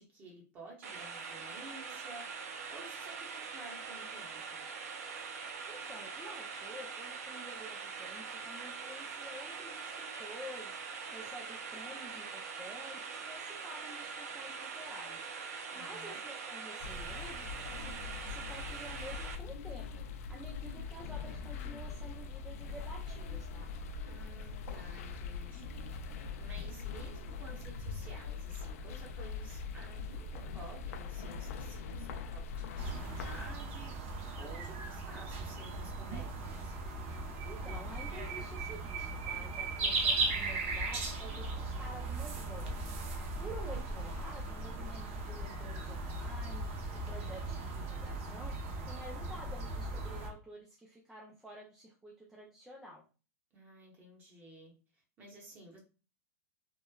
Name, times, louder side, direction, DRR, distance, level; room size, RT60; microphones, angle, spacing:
voice 1, 0.0-4.6 15.7-16.2 24.1-36.7 53.5-55.8, right 2 dB, 25° right, -1 dB, 0.9 m, -53 dB
sound 1, 0.8-19.4, right 5 dB, 90° right, 0.5 m, -43 dB
voice 2, 5.7-17.5 17.8-23.7 37.5-46.7 47.0-53.0, equal, 5° right, -3 dB, 0.3 m, -50 dB
sound 2, 16.8-33.5, left 5 dB, 70° left, 0.3 m, -42 dB
sound 3, 32.8-50.3, right 3 dB, 60° right, 0.7 m, -37 dB
2.9 x 2.1 x 2.2 m, 0.34 s
supercardioid pair, 150°, 8 cm